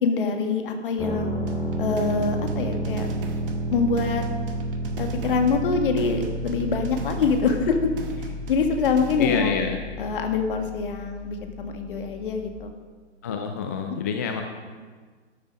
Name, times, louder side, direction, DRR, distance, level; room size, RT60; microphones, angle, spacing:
voice 1, 0.0-1.3 1.8-3.1 3.7-4.2 5.0-7.9 8.2-9.5 10.0-12.7, left 5 dB, 45° left, 5 dB, 1.8 m, -25 dB
sound 1, 1.0-12.6, right 1 dB, 5° right, 2.0 m, -31 dB
sound 2, 1.5-9.5, right 3 dB, 50° right, 1.7 m, -39 dB
voice 2, 9.2-9.8 13.2-14.4, left 6 dB, 15° left, 4 dB, 0.4 m, -26 dB
12.5 x 10.0 x 5.5 m, 1.5 s
figure-of-eight pair, 120°, 35 cm